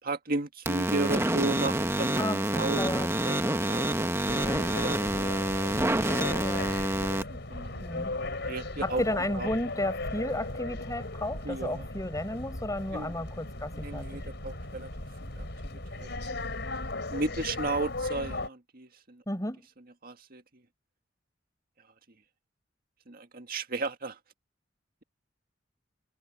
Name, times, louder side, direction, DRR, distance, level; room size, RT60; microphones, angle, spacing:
voice 1, 0.0-5.5 6.9-7.9 8.5-9.0 9.3-9.5 11.4-11.9 12.9-13.2 13.7-14.9 15.2-16.3 17.1-19.2 20.0-20.6 23.1-24.2, right 2 dB, 50° right, 1.9 m, -35 dB
sound 1, 0.7-7.2, right 1 dB, 15° right, 1.2 m, -28 dB
voice 2, 2.2-3.7 4.4-4.7 6.4-6.7 7.8-8.1 8.5-14.2 19.3-19.6, left 1 dB, 20° left, 6.5 m, -33 dB
sound 2, 4.3-18.5, left 2 dB, 65° left, 5.3 m, -37 dB
head